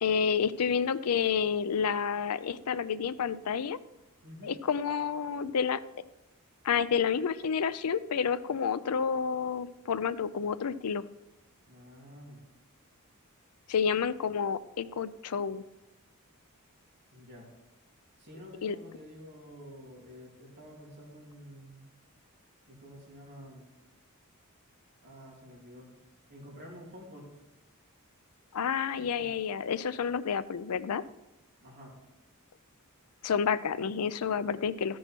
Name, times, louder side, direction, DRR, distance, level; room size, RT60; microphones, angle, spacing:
voice 1, 0.0-3.8 4.4-5.8 6.6-11.0 13.7-15.6 18.6-18.8 28.5-31.0 33.2-35.0, left 6 dB, 80° left, 15 dB, 0.5 m, -29 dB
voice 2, 4.2-4.5 11.7-12.4 17.1-17.5 18.2-21.9 22.7-23.7 25.0-25.9 26.3-27.4 29.2-29.3 31.6-31.9, equal, 50° right, -3 dB, 3.2 m, -49 dB
14.0 x 6.3 x 4.5 m, 0.97 s
head